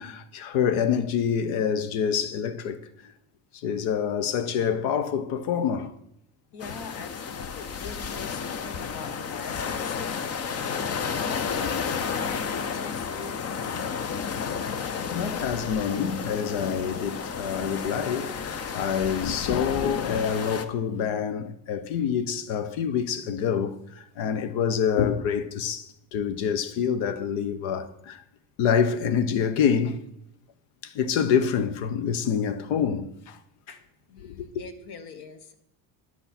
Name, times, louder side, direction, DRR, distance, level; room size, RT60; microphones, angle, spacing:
voice 1, 0.0-3.1 3.5-5.9 15.1-28.2 28.6-30.1 30.8-33.4 34.2-34.5, left 7 dB, 70° left, 1.0 m, -26 dB
voice 2, 6.5-10.4 10.7-14.4 33.7-33.8 34.1-35.5, left 4 dB, 50° left, 1.3 m, -42 dB
sound 1, 6.6-20.6, left 6 dB, 30° left, 0.6 m, -32 dB
10.0 x 8.0 x 4.3 m
cardioid pair, 125°, 49 cm